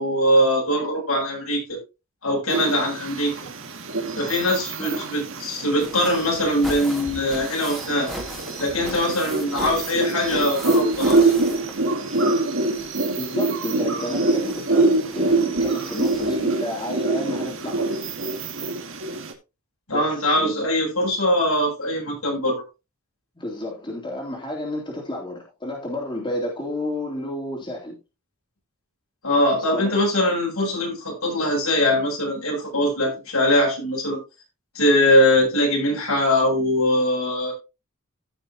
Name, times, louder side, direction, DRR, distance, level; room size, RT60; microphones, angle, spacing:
voice 1, 0.0-1.8 2.2-3.3 4.2-8.1 8.6-11.3 19.9-22.6 29.2-34.2 34.7-37.5, left 1 dB, 80° left, 7.7 m, -22 dB
sound 1, 2.5-19.3, right 2 dB, 65° right, 2.1 m, -25 dB
sound 2, 5.6-12.4 12.6-16.6 17.7-17.8 18.1-18.2, equal, ahead, 3.0 m, -39 dB
voice 2, 13.2-18.0 19.9-20.5 23.4-27.9 29.5-29.9, left 1 dB, 20° left, 3.4 m, -31 dB
16.0 x 6.7 x 2.9 m
head